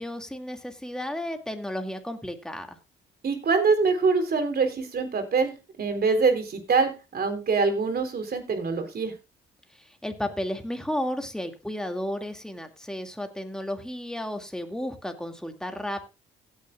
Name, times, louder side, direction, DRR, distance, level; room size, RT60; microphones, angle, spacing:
voice 1, 0.0-2.8 9.8-16.0, left 1 dB, 5° left, 5 dB, 2.3 m, -33 dB
voice 2, 3.2-9.1, right 4 dB, 50° right, 7 dB, 3.8 m, -24 dB
16.5 x 9.6 x 2.4 m, 0.28 s
cardioid pair, 90°, 20 cm